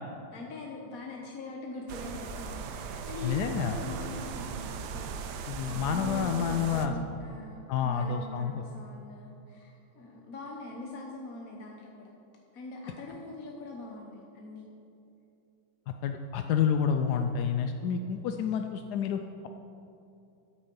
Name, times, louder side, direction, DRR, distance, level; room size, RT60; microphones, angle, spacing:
voice 1, 0.3-12.1 12.5-14.7, left 2 dB, 50° left, -1 dB, 1.3 m, -43 dB
sound 1, 1.9-6.9, right 6 dB, 65° right, 1.1 m, -38 dB
voice 2, 3.2-3.8 5.5-6.9 7.7-8.6 16.0-19.5, left 7 dB, 75° left, 6 dB, 0.9 m, -29 dB
13.0 x 8.6 x 5.3 m, 2.8 s
omnidirectional pair, 2.2 m